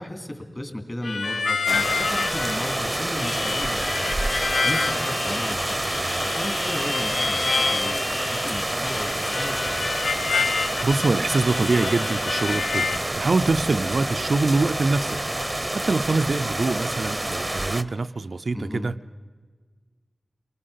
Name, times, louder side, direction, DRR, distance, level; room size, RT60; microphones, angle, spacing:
voice 1, 0.0-4.0 4.6-9.9 18.5-18.9, left 1 dB, 25° left, 5 dB, 3.0 m, -35 dB
Harmonica, 1.0-13.0, left 4 dB, 85° left, 0.6 m, -28 dB
sound 1, 1.7-17.8, right 1 dB, 25° right, 0.8 m, -28 dB
voice 2, 10.8-15.2 15.9-19.0, right 3 dB, 65° right, 9 dB, 0.5 m, -24 dB
24.5 x 19.5 x 5.7 m, 1.5 s
wide cardioid pair, 55°, 0 cm